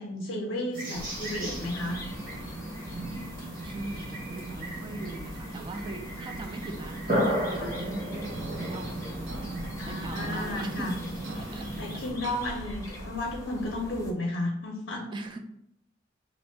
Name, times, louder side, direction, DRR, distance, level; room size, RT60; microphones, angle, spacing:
voice 1, 0.0-2.0 7.6-7.7 9.8-10.9 11.5-15.0, left 1 dB, 60° left, 0 dB, 0.6 m, -33 dB
sound 1, 0.7-12.1, right 1 dB, 50° right, 1.2 m, -35 dB
sound 2, 0.9-14.1, left 1 dB, 15° left, 0.6 m, -43 dB
voice 2, 3.6-9.0 9.9-11.0 11.4-11.7 15.1-15.4, right 2 dB, 25° right, 5 dB, 0.3 m, -40 dB
sound 3, 8.2-13.2, right 2 dB, 70° right, 0.7 m, -45 dB
2.9 x 2.6 x 4.4 m, 0.79 s
head